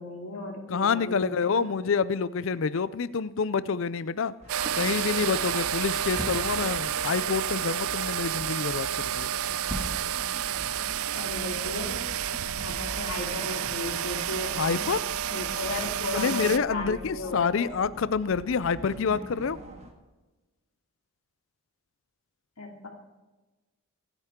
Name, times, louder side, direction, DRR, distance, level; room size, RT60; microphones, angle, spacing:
voice 1, 0.0-1.3 11.1-12.0 12.6-14.9 15.2-17.7 22.6-22.9, left 2 dB, 90° left, 1 dB, 2.6 m, -35 dB
voice 2, 0.7-4.3 4.7-9.3 14.6-15.0 16.1-19.6, left 5 dB, 60° left, 16 dB, 0.4 m, -27 dB
sound 1, 4.4-19.9, right 1 dB, 30° right, 1.9 m, -42 dB
sound 2, 4.5-16.6, right 10 dB, 70° right, 0.4 m, -30 dB
26.0 x 9.0 x 3.7 m, 1.2 s
head